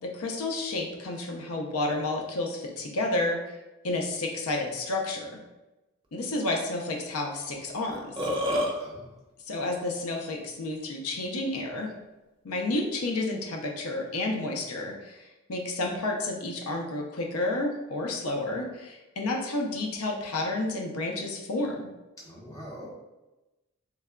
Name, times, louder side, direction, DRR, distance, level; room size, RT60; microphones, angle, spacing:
voice 1, 0.0-3.4 3.8-5.3 6.1-8.3 9.5-11.9 12.4-21.9, left 2 dB, 80° left, 1 dB, 0.5 m, -31 dB
Burping eructation, 7.9-8.7, equal, 25° right, 0.4 m, -27 dB
voice 2, 8.8-9.1 22.2-22.9, equal, 15° left, -5 dB, 0.7 m, -43 dB
3.3 x 2.2 x 3.5 m, 1.0 s
head